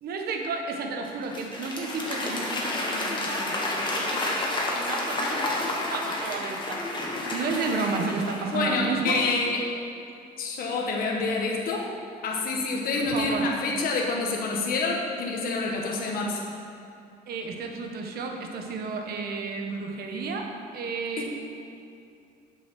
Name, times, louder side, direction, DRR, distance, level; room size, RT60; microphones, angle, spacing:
voice 1, 0.0-6.9 7.3-9.2 13.0-13.5 17.3-20.5 20.7-21.3, right 4 dB, 65° right, 3 dB, 1.2 m, -32 dB
Applause / Crowd, 1.0-8.8, left 2 dB, 30° left, 1.5 m, -30 dB
voice 2, 8.5-9.7 10.4-11.9 12.2-16.4 21.2-21.3, left 3 dB, 60° left, -1 dB, 1.3 m, -27 dB
7.9 x 6.1 x 6.2 m, 2.6 s
cardioid pair, 110°, 17 cm